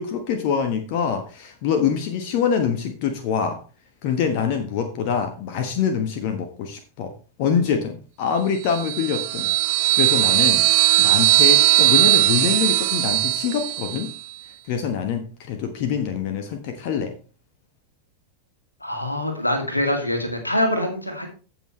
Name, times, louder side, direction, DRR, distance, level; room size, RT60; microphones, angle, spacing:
voice 1, 0.0-3.6 4.0-7.1 7.4-9.5 10.0-10.6 11.0-14.1 14.7-17.1, left 7 dB, 45° left, 6 dB, 1.3 m, -24 dB
sound 1, 8.7-14.1, right 18 dB, 45° right, 0.6 m, -19 dB
voice 2, 18.8-21.3, left 1 dB, 85° left, 4 dB, 2.1 m, -24 dB
15.5 x 6.1 x 3.2 m, 0.36 s
figure-of-eight pair, 90°, 0 cm